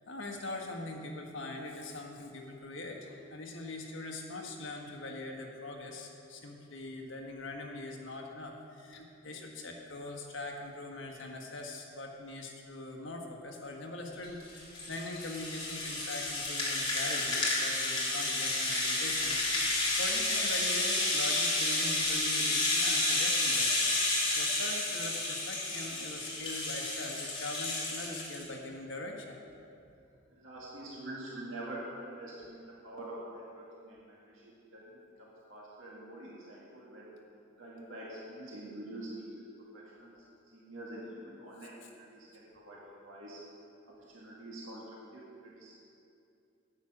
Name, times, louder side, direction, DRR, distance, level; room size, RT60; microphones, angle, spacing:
voice 1, 0.1-19.7 20.0-24.0 24.3-29.4, left 2 dB, 70° left, 1 dB, 1.5 m, -42 dB
Rattle (instrument), 14.2-28.4, left 2 dB, 25° left, 2.4 m, -31 dB
voice 2, 30.3-37.1 37.6-39.3 39.7-40.2 40.5-43.4 44.1-45.7, right 1 dB, 80° right, -5 dB, 1.9 m, -46 dB
9.8 x 8.9 x 6.0 m, 2.6 s
head